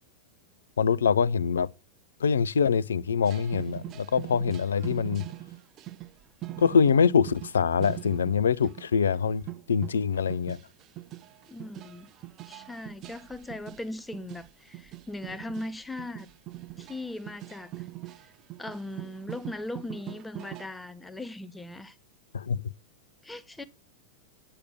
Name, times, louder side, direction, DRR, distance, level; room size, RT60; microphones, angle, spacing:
voice 1, 0.8-1.7 2.2-5.2 6.6-9.4 9.7-10.6 22.3-22.7, left 6 dB, 70° left, 0.6 m, -24 dB
sound 1, 3.2-8.9 9.1-9.2 9.5-20.7, right 16 dB, 35° right, 0.7 m, -42 dB
voice 2, 11.5-12.1 12.5-16.3 16.8-17.8 18.2-18.3 18.6-22.0 23.2-23.6, left 2 dB, 5° left, 0.9 m, -39 dB
10.0 x 6.7 x 5.8 m
figure-of-eight pair, 90°, 0 cm